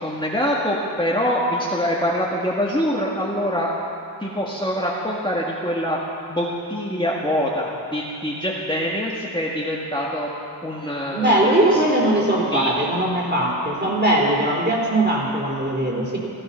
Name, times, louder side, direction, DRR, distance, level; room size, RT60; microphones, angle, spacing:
voice 1, 0.0-3.7 4.2-6.0 6.3-10.3 10.6-12.8, equal, 10° left, -5 dB, 1.7 m, -25 dB
voice 2, 11.1-16.2, right 1 dB, 25° right, -3 dB, 3.7 m, -20 dB
15.5 x 14.0 x 5.7 m, 2.5 s
wide cardioid pair, 65°, 42 cm